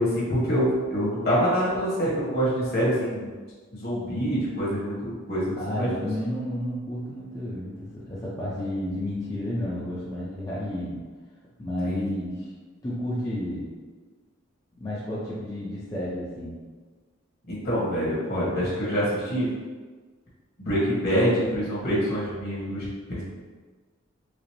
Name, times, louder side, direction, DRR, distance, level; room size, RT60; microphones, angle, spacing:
voice 1, 0.0-3.3 3.7-5.9 11.8-12.1 17.5-19.5 20.6-23.2, equal, 50° left, -7 dB, 1.5 m, -26 dB
voice 2, 5.6-11.0 11.6-12.5 12.8-13.7 14.8-16.5, left 1 dB, 20° left, -9 dB, 0.6 m, -31 dB
4.9 x 2.1 x 3.1 m, 1.4 s
head